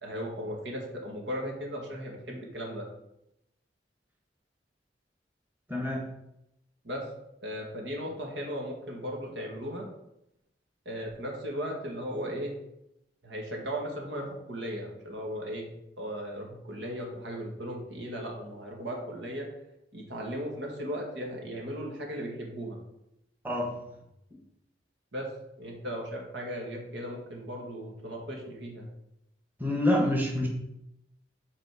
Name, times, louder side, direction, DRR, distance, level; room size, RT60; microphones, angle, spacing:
voice 1, 0.0-2.9 6.8-7.0 7.4-9.9 10.9-12.5 13.2-15.7 16.0-19.5 19.9-22.8 25.1-25.3 25.6-28.9, equal, 90° right, 0 dB, 1.9 m, -36 dB
voice 2, 5.7-6.0 23.4-23.8 29.6-30.5, left 1 dB, 10° right, -1 dB, 1.2 m, -26 dB
6.2 x 4.2 x 6.3 m, 0.84 s
head